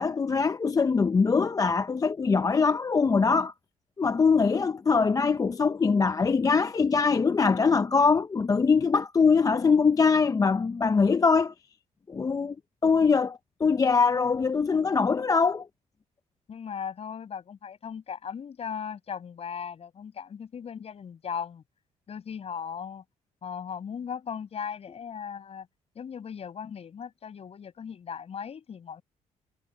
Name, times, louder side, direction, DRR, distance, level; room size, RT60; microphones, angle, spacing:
voice 1, 0.0-3.5 4.0-11.5 12.1-12.6 12.8-15.7, left 5 dB, 25° left, 0.5 m, -23 dB
voice 2, 16.5-21.6 22.1-23.0 23.4-25.7 26.0-29.0, left 7 dB, 50° left, 7.1 m, -37 dB
cardioid pair, 95°, 13 cm